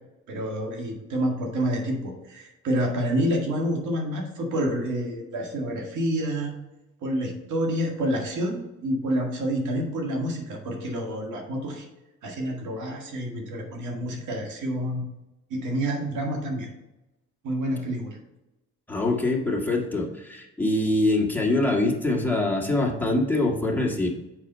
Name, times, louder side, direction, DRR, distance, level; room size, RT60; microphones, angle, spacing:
voice 1, 0.3-6.5 7.0-11.8 12.2-15.0 15.5-16.7 17.4-18.2, equal, 75° right, 1 dB, 2.0 m, -28 dB
voice 2, 18.9-24.1, left 2 dB, 5° left, -2 dB, 1.8 m, -24 dB
6.6 x 4.9 x 5.5 m, 0.96 s
cardioid pair, 90°, 30 cm